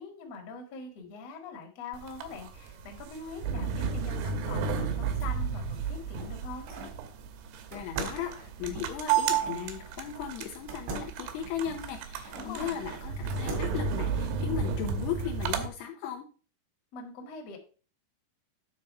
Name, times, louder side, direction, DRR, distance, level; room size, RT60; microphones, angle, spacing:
voice 1, 0.0-6.7 12.3-12.8 16.9-17.6, left 4 dB, 50° left, 2 dB, 1.9 m, -43 dB
sound 1, 1.9-15.7, right 6 dB, 75° right, 2.8 m, -33 dB
sound 2, 5.8-7.0 7.7-9.6 10.7-12.5 13.0-13.9, right 2 dB, 90° right, 4.9 m, -41 dB
voice 2, 7.7-16.3, left 9 dB, 80° left, 3 dB, 2.6 m, -37 dB
9.6 x 4.0 x 5.3 m, 0.38 s
omnidirectional pair, 5.3 m